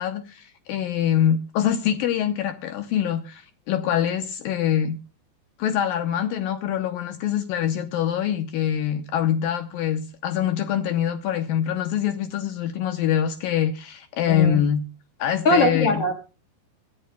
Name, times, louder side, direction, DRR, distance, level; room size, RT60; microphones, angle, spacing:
voice 1, 0.0-5.0 5.6-14.8 15.2-16.0, left 9 dB, 75° left, 7 dB, 2.4 m, -24 dB
voice 2, 14.3-14.6 15.4-16.1, left 2 dB, 50° left, 4 dB, 2.2 m, -20 dB
25.5 x 11.0 x 2.3 m, 0.34 s
omnidirectional pair, 4.4 m